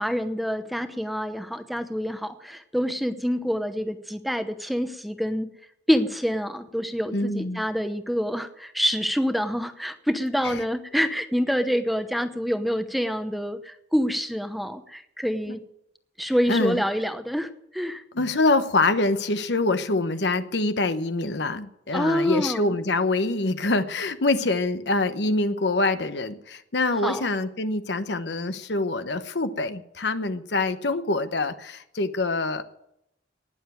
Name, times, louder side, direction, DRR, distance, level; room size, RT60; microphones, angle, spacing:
voice 1, 0.0-5.5 5.9-15.6 16.2-18.0 21.9-22.7 27.0-27.3, equal, ahead, 9 dB, 0.8 m, -27 dB
voice 2, 7.1-7.6 10.4-10.6 15.5-15.6 16.5-16.8 18.1-32.6, left 2 dB, 75° left, 10 dB, 1.0 m, -25 dB
19.0 x 7.1 x 9.1 m, 0.78 s
head